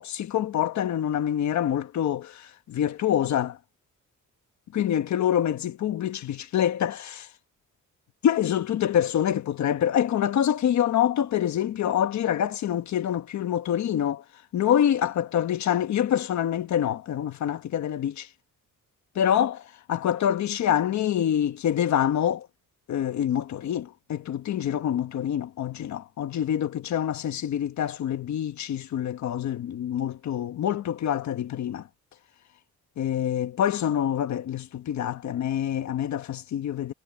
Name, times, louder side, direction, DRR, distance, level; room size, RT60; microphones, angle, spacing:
voice 1, 0.0-3.6 4.7-7.3 8.2-14.2 14.5-18.3 19.1-19.6 19.9-22.5 22.9-31.8 33.0-36.9, left 10 dB, 60° left, 1.3 m, -26 dB
cardioid pair, 180°, 32 cm